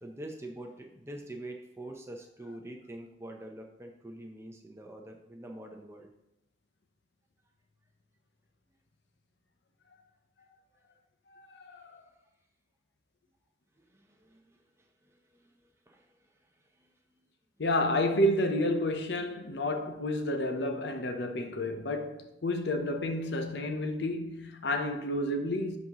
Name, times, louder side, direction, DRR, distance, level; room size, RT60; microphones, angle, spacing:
voice 1, 0.0-6.1 13.8-16.3 16.8-17.3, right 1 dB, 15° right, 0.8 m, -46 dB
voice 2, 11.3-12.0 17.6-25.8, left 1 dB, 65° left, 0.8 m, -30 dB
11.0 x 4.1 x 3.0 m
head